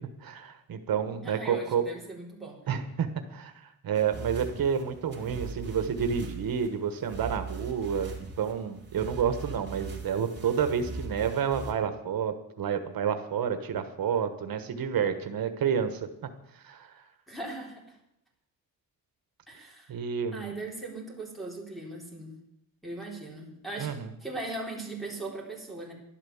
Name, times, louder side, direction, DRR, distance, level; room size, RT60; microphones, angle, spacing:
voice 1, 0.2-1.8 2.7-16.1 16.5-17.0 19.9-20.5 23.8-24.1, right 7 dB, 80° right, 8 dB, 1.3 m, -30 dB
voice 2, 1.2-2.6 17.3-18.0 19.5-19.9 20.3-22.3 22.8-25.9, right 2 dB, ahead, -4 dB, 4.1 m, -39 dB
sound 1, 3.9-11.7, right 4 dB, 30° right, 3.4 m, -41 dB
12.0 x 11.5 x 7.1 m, 0.81 s
wide cardioid pair, 140°, 35 cm